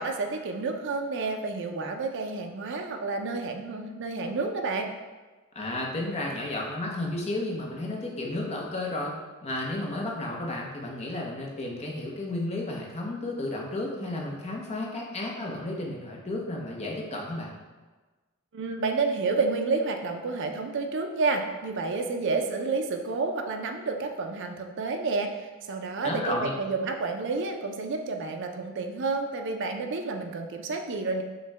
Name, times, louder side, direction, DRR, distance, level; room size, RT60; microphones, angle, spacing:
voice 1, 0.0-4.9 18.5-31.2, right 3 dB, 55° right, 4 dB, 0.4 m, -30 dB
voice 2, 5.5-9.1 9.4-17.6 26.0-26.6, left 2 dB, 30° left, -2 dB, 0.7 m, -32 dB
6.2 x 2.2 x 3.3 m, 1.3 s
head